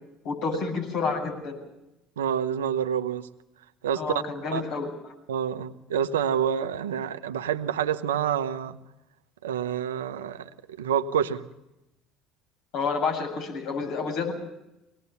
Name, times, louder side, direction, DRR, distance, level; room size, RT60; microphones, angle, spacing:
voice 1, 0.2-1.6 4.0-4.9 12.7-14.3, left 4 dB, 65° left, 0 dB, 7.5 m, -29 dB
voice 2, 2.2-3.3 3.8-4.0 4.5-4.6 5.3-8.8 9.4-11.4, right 8 dB, 85° right, 10 dB, 0.9 m, -28 dB
24.0 x 19.5 x 7.0 m, 0.92 s
hypercardioid pair, 65°, 0 cm